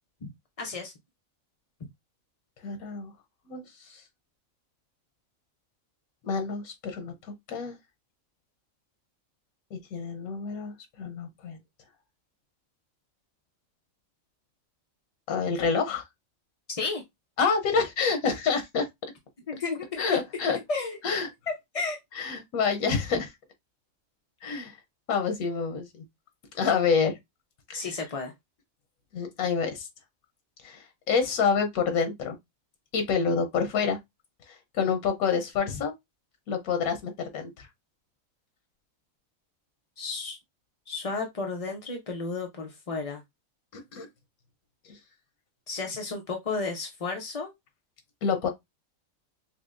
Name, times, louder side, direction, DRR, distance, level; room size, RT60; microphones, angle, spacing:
voice 1, 0.6-0.9 16.7-17.0 19.5-20.2 20.7-21.0 21.7-22.0 27.7-28.3 40.0-40.4 40.9-43.2 45.7-47.5, left 4 dB, 55° left, 0.4 m, -32 dB
voice 2, 2.6-3.1 3.5-4.0 6.2-7.1 7.5-7.7 9.7-11.6 15.3-16.0 17.4-18.9 20.0-20.6 21.0-21.3 22.1-23.3 24.4-24.8 25.1-25.9 26.5-27.2 27.7-27.9 29.1-29.9 30.6-32.4 32.9-34.0 34.5-35.9 36.5-37.7 43.7-44.1 48.2-48.5, left 5 dB, 90° left, 1.2 m, -27 dB
5.8 x 2.0 x 2.5 m
omnidirectional pair, 1.5 m